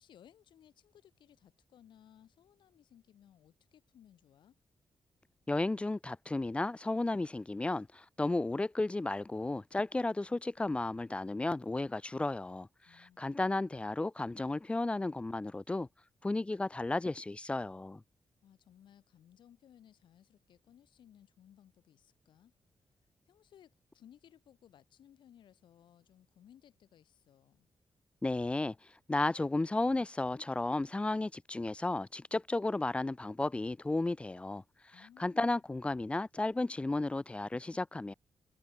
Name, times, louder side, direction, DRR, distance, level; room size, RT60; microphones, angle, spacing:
voice 1, 0.0-4.6 12.8-13.8 18.4-22.5 23.3-27.7 34.9-35.6, left 10 dB, 90° left, 5.2 m, -61 dB
voice 2, 5.5-15.9 16.2-18.0 28.2-28.8 29.1-34.6 35.2-38.1, left 2 dB, 15° left, 0.3 m, -33 dB
cardioid pair, 100°, 8 cm